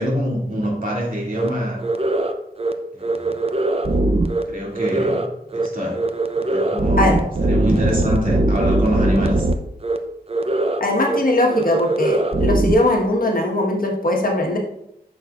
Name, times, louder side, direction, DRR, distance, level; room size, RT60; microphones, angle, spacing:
voice 1, 0.0-1.8 2.9-3.4 4.5-5.2 5.5-6.0 6.4-9.5, equal, 55° right, -4 dB, 2.5 m, -25 dB
sound 1, 1.3-1.5 1.8-2.3 2.6-2.7 3.0-4.4 4.7-5.3 5.5-5.7 5.9-9.5 9.8-10.0 10.3-10.8 11.1-11.2 11.5-12.7, right 2 dB, 35° right, 0.6 m, -20 dB
voice 2, 10.8-14.6, left 1 dB, 60° left, 0 dB, 1.3 m, -20 dB
8.6 x 6.4 x 2.4 m, 0.79 s
wide cardioid pair, 75°, 17 cm